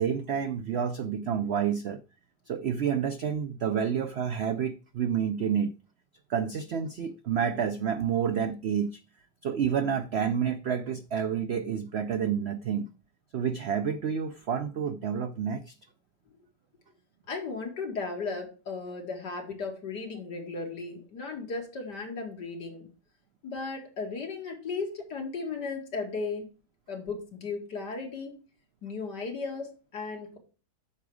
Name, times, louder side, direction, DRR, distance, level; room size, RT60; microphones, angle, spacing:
voice 1, 0.0-2.0 2.5-5.7 6.3-9.0 9.4-12.9 13.3-15.7, right 7 dB, 75° right, 0.6 m, -29 dB
voice 2, 17.3-22.9 23.4-26.5 26.9-28.3 28.8-30.4, left 4 dB, 80° left, 2.7 m, -35 dB
8.7 x 6.0 x 4.9 m
omnidirectional pair, 1.8 m